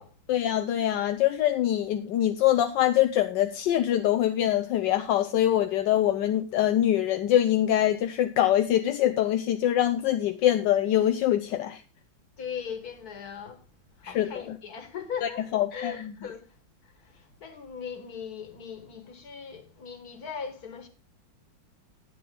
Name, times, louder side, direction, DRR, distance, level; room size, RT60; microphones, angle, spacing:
voice 1, 0.3-11.8 14.0-14.6 15.2-16.1, left 12 dB, 70° left, 1.2 m, -24 dB
voice 2, 12.4-13.7 14.0-16.5 16.8-20.9, left 7 dB, 50° left, 2.0 m, -39 dB
10.5 x 10.0 x 3.8 m
omnidirectional pair, 2.3 m